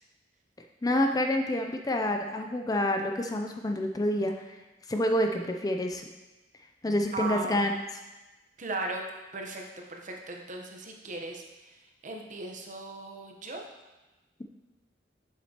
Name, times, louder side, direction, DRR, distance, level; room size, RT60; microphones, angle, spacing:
voice 1, 0.8-4.6 4.9-6.0 6.8-7.7, left 1 dB, 20° left, 4 dB, 0.4 m, -28 dB
voice 2, 7.1-7.6 8.6-9.0 9.3-9.6 9.9-13.6, right 2 dB, 45° right, 1 dB, 0.9 m, -37 dB
7.5 x 7.1 x 2.9 m, 1.1 s
head